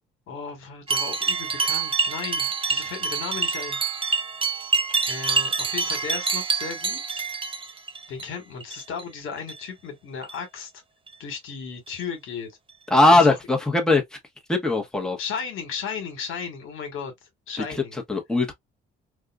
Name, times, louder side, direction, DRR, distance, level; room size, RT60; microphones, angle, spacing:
voice 1, 0.3-3.8 5.1-7.3 8.1-10.8 11.2-12.5 13.1-13.3 15.2-18.0, left 6 dB, 75° left, 1.4 m, -35 dB
sound 1, 0.9-8.2 8.6-9.0 9.4-9.6 10.2-10.4 11.1-11.2 11.9-12.0 12.7-12.8, right 5 dB, 25° right, 0.7 m, -26 dB
voice 2, 12.9-14.0 14.5-15.2 18.1-18.5, left 2 dB, 5° left, 1.0 m, -19 dB
3.5 x 2.4 x 2.3 m
cardioid pair, 90°, 21 cm